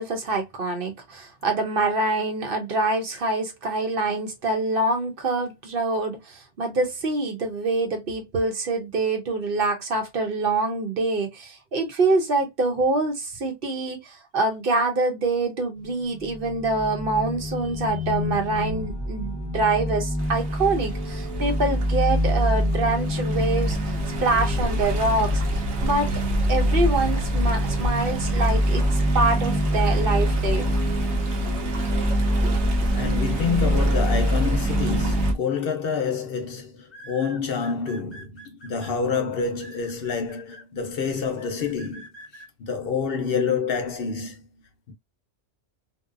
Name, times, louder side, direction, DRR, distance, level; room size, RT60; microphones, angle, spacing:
voice 1, 0.0-23.9 24.2-25.4 25.8-26.1 26.5-30.7, right 3 dB, 55° right, 0.9 m, -25 dB
sound 1, 15.8-35.3, equal, 25° right, 0.9 m, -25 dB
Stream, 20.2-35.3, left 1 dB, 80° right, 1.1 m, -31 dB
voice 2, 32.9-42.1 42.6-44.4 44.9-45.0, left 5 dB, 60° left, 0.8 m, -27 dB
sound 2, 35.4-35.7 36.9-38.9 39.6-40.6 41.4-42.5, right 1 dB, 30° left, 0.7 m, -45 dB
2.7 x 2.2 x 2.4 m
omnidirectional pair, 1.1 m